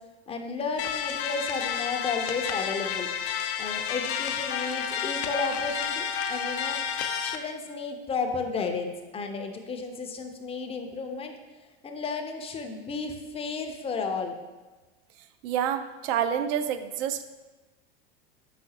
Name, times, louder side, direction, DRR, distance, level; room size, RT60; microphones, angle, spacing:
voice 1, 0.3-3.1 3.6-6.8 7.2-11.3 11.8-14.3, left 4 dB, 20° left, 4 dB, 0.4 m, -33 dB
sound 1, 0.8-7.4, left 8 dB, 75° left, 0.5 m, -30 dB
voice 2, 15.4-17.2, right 9 dB, 65° right, 10 dB, 0.4 m, -28 dB
4.8 x 3.7 x 2.7 m, 1.2 s
hypercardioid pair, 100°, 32 cm